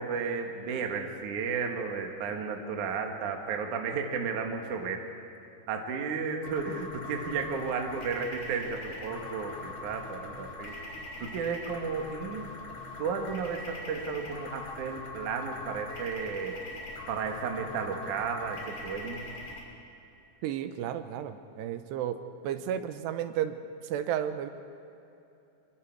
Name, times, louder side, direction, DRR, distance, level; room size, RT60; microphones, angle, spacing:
voice 1, 0.0-5.0 5.7-10.9 11.2-12.5 13.0-16.6 17.1-19.2, right 5 dB, 55° right, 3 dB, 2.6 m, -33 dB
sound 1, 6.4-19.6, left 2 dB, 40° left, 3.9 m, -42 dB
voice 2, 20.4-23.6 23.8-24.5, right 10 dB, 80° right, 9 dB, 2.9 m, -33 dB
26.0 x 22.5 x 4.6 m, 2.8 s
omnidirectional pair, 5.0 m